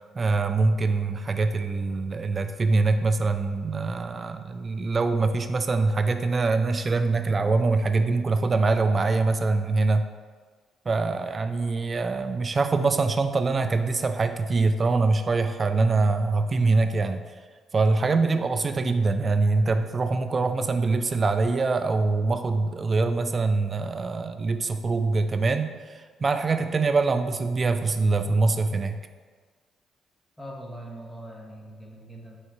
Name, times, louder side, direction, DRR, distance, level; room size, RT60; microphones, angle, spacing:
voice 1, 0.1-10.0 10.9-17.2 17.7-29.0, right 3 dB, 35° right, 8 dB, 0.3 m, -24 dB
voice 2, 30.4-32.4, right 1 dB, 5° left, -1 dB, 0.9 m, -41 dB
3.6 x 3.0 x 4.4 m, 1.5 s
cardioid pair, 100°, 0 cm